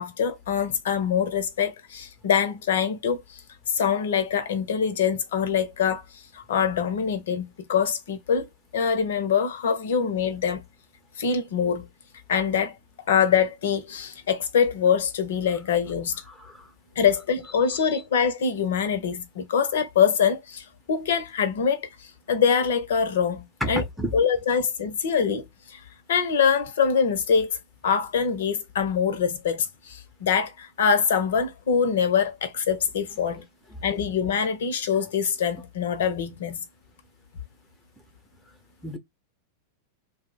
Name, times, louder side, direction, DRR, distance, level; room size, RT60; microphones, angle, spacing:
voice 1, 0.0-3.4 3.7-6.0 6.3-10.6 11.2-11.8 12.3-12.8 13.1-16.2 17.0-23.8 24.1-25.8 26.1-27.5 27.8-33.4 33.8-36.6, left 7 dB, 60° left, 0.6 m, -24 dB
voice 2, 16.3-16.7 17.7-18.0 23.6-24.2 38.8-39.0, equal, ahead, 0.6 m, -31 dB
2.5 x 2.1 x 3.7 m
figure-of-eight pair, 90°, 0 cm